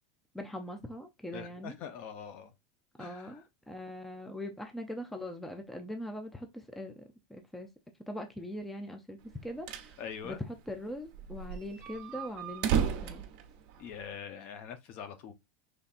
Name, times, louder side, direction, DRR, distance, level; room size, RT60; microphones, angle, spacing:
voice 1, 0.3-1.8 3.0-7.7 8.1-10.0 10.2-13.2, left 1 dB, 5° left, 0.5 m, -41 dB
voice 2, 1.3-2.5 3.0-3.4 10.0-10.4 13.8-15.3, left 7 dB, 45° left, 0.7 m, -43 dB
sound 1, 9.3-9.9 10.3-10.4 10.6-10.7 11.1-14.2, right 8 dB, 45° right, 0.9 m, -33 dB
5.5 x 3.4 x 2.5 m
supercardioid pair, 150°, 4 cm